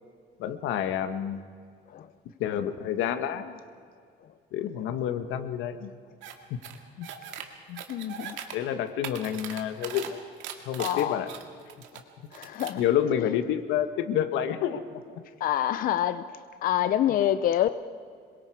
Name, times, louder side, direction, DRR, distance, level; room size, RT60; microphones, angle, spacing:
voice 1, 0.4-1.4 2.4-3.6 4.5-5.9 6.5-6.6 7.0-7.1 7.7-7.8 8.5-10.2 10.6-11.3 12.8-14.8 15.1-15.2, left 10 dB, 85° left, 9 dB, 1.5 m, -29 dB
sound 1, 6.2-6.3 6.6-7.4 7.7-8.5 8.9-10.1 10.4-12.0 12.3-12.8, right 9 dB, 90° right, 2.1 m, -39 dB
voice 2, 7.9-8.4 10.8-11.2 12.3-12.8 13.2-13.3 15.4-17.7, left 11 dB, 50° left, 12 dB, 0.6 m, -27 dB
26.5 x 23.0 x 4.9 m, 2.2 s
cardioid pair, 160°, 19 cm